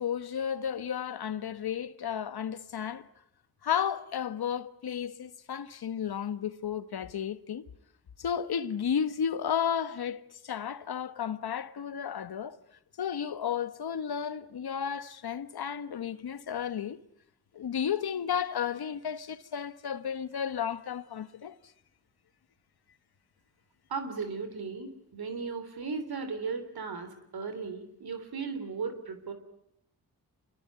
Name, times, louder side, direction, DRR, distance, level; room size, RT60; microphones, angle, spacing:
voice 1, 0.0-3.0 3.6-7.6 8.2-12.6 13.0-17.0 17.5-21.6, left 8 dB, 80° left, 1.3 m, -33 dB
voice 2, 23.9-29.3, right 5 dB, 75° right, 3.5 m, -36 dB
26.5 x 22.0 x 9.5 m
cardioid pair, 55°, 37 cm